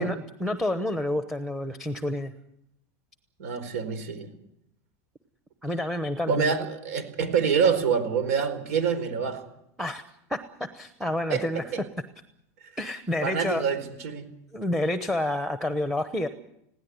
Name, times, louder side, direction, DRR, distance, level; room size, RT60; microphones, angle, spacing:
voice 1, 0.0-2.3 5.6-6.6 9.8-10.0 10.3-10.4 10.7-11.6 12.8-13.6 14.5-16.3, left 1 dB, ahead, 9 dB, 0.9 m, -29 dB
voice 2, 3.4-4.3 6.3-9.4 11.3-11.4 11.7-11.8 13.2-14.3, right 6 dB, 90° right, 12 dB, 4.5 m, -26 dB
20.5 x 17.0 x 9.5 m, 0.79 s
supercardioid pair, 170°, 8 cm